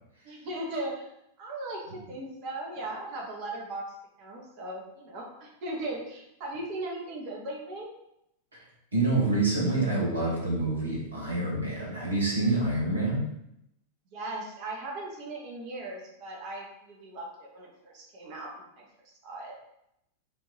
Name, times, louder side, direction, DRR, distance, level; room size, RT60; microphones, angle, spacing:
voice 1, 0.2-3.8 4.2-7.9 14.1-18.9 19.2-19.6, right 2 dB, 45° right, -1 dB, 1.1 m, -38 dB
voice 2, 8.9-13.2, right 2 dB, 75° right, -3 dB, 1.4 m, -27 dB
5.2 x 2.8 x 3.1 m, 0.80 s
figure-of-eight pair, 90°, 0 cm